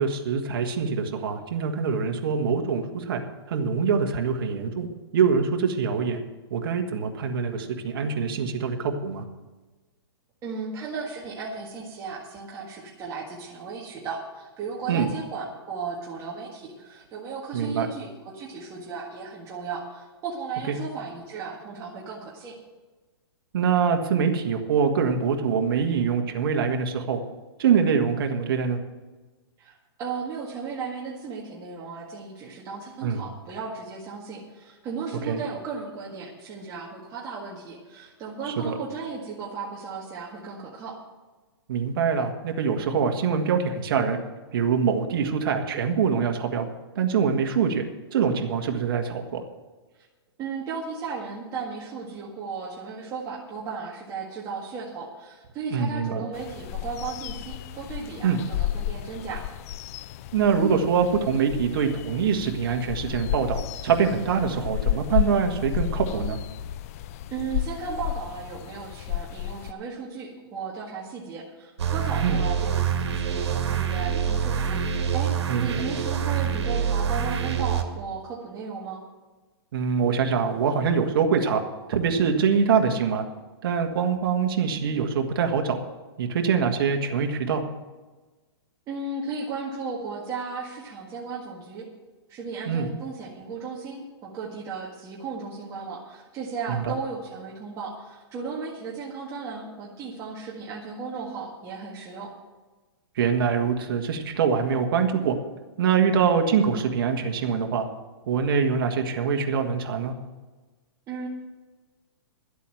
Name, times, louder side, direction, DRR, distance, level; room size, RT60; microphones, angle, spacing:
voice 1, 0.0-3.2 3.5-6.2 6.5-9.2 14.9-15.1 17.5-17.9 20.7-20.8 23.5-27.2 27.6-28.8 33.0-33.2 35.3-35.4 38.5-38.7 41.7-44.2 44.5-46.7 47.0-47.8 48.1-49.4 55.7-56.2 58.2-58.4 60.3-66.4 72.2-72.4 75.5-75.8 79.7-81.6 81.9-83.2 83.6-85.8 86.2-87.6 92.7-92.9 96.7-96.9 103.2-105.4 105.8-107.9 108.3-110.1, right 6 dB, 55° right, 4 dB, 1.7 m, -24 dB
voice 2, 10.4-22.6 29.6-41.0 50.4-59.5 67.3-75.3 75.6-79.0 88.9-91.9 92.3-102.3 111.1-111.3, right 5 dB, 20° right, -4 dB, 1.8 m, -35 dB
sound 1, 56.3-69.7, left 13 dB, 35° left, 0.4 m, -32 dB
sound 2, 71.8-77.8, right 7 dB, 85° right, 2.0 m, -26 dB
12.0 x 8.3 x 7.7 m, 1.3 s
hypercardioid pair, 155°, 14 cm